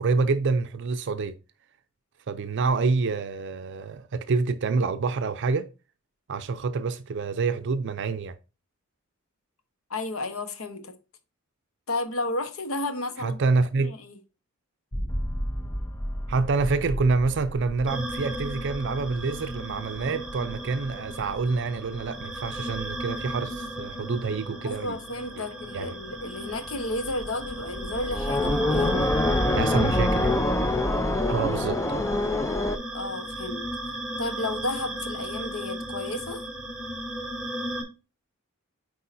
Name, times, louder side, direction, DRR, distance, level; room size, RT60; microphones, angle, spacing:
voice 1, 0.0-1.3 2.3-5.7 6.3-8.3 13.2-13.9 16.3-25.0 25.7-25.9 28.7-29.1 29.6-30.3 31.3-32.0, right 4 dB, 60° right, 0.5 m, -27 dB
voice 2, 9.9-11.0 11.9-13.4 13.8-14.2 24.6-29.2 32.9-33.7 34.2-36.4, left 2 dB, 85° left, 1.1 m, -32 dB
sound 1, 14.9-23.8 24.1-24.9 25.2-25.3 25.6-32.8, left 1 dB, 15° left, 0.5 m, -28 dB
sound 2, 17.9-37.8, equal, 5° right, 1.7 m, -35 dB
8.4 x 4.7 x 2.6 m
head